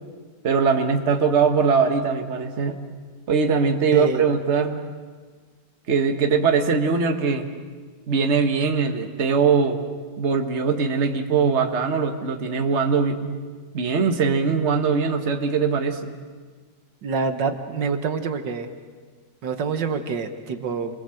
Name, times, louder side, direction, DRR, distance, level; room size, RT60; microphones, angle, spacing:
voice 1, 0.4-2.8 3.3-4.9 5.9-7.5 8.1-9.9 10.2-13.4 13.7-16.1, right 5 dB, 40° right, 5 dB, 1.7 m, -21 dB
voice 2, 3.9-4.3 17.0-18.7 19.4-21.0, right 5 dB, 75° right, 7 dB, 1.9 m, -26 dB
29.0 x 22.5 x 7.8 m, 1.5 s
omnidirectional pair, 1.9 m